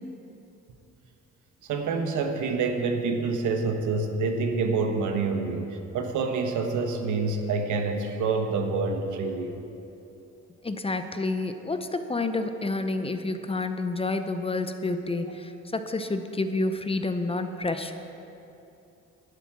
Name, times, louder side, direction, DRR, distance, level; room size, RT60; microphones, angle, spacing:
voice 1, 1.6-9.5, right 4 dB, 80° right, 4 dB, 1.2 m, -27 dB
voice 2, 10.6-17.9, left 2 dB, 20° left, 8 dB, 0.6 m, -29 dB
11.5 x 8.3 x 6.1 m, 2.8 s
cardioid pair, 90°, 30 cm